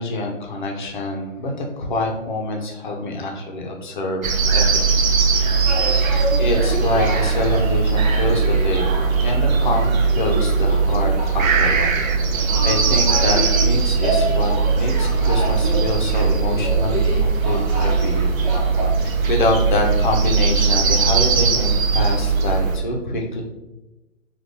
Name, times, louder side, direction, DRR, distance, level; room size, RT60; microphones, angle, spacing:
voice 1, 0.0-5.7 6.4-12.0 12.3-14.5 14.8-18.4 19.0-23.4, left 2 dB, 40° left, 1 dB, 0.5 m, -26 dB
sound 1, 4.2-22.8, right 5 dB, 85° right, 0.7 m, -19 dB
sound 2, 5.7-18.9, right 1 dB, 30° right, 0.4 m, -30 dB
3.7 x 2.3 x 2.6 m, 1.0 s
hypercardioid pair, 155°, 40 cm